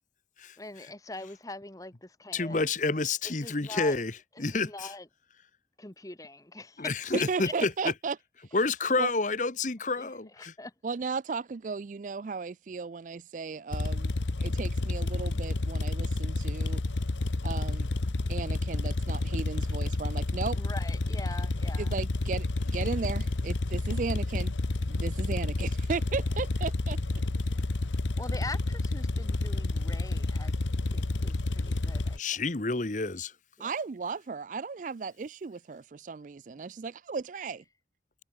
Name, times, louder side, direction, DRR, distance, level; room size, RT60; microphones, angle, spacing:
voice 1, 0.6-2.6 3.4-3.9 4.5-5.1 5.8-7.0 7.4-7.5 10.0-10.7 20.5-21.9 23.9-24.0 28.2-32.2 33.6-33.8, left 2 dB, 20° left, 1.3 m, -43 dB
voice 2, 2.3-4.1 4.4-4.9 6.8-7.9 8.5-10.5 32.2-33.3, left 3 dB, 40° left, 1.1 m, -29 dB
voice 3, 7.3-8.2 9.0-9.1 10.8-14.1 14.4-16.8 17.4-17.9 18.3-20.6 21.8-24.5 24.9-27.0 33.6-37.6, right 4 dB, 45° right, 0.4 m, -35 dB
sound 1, 13.7-32.2, left 2 dB, 85° left, 1.0 m, -30 dB
head